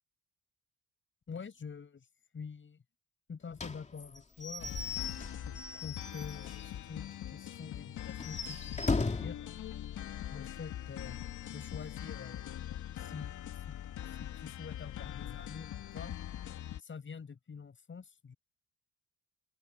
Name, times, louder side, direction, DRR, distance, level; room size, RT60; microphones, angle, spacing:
voice 1, 1.3-2.1 2.3-2.8 3.3-5.0 5.7-9.6 10.3-11.2 11.5-12.4 13.0-13.8 14.1-16.2 16.8-18.4, left 6 dB, 40° left, 7.0 m, -46 dB
Slam / Squeak / Wood, 3.6-6.8 7.1-7.2 7.5-7.6 8.1-9.4, left 3 dB, 25° left, 2.8 m, -37 dB
sound 1, 4.6-16.8, left 11 dB, 75° left, 2.9 m, -43 dB
cardioid pair, 90°, 30 cm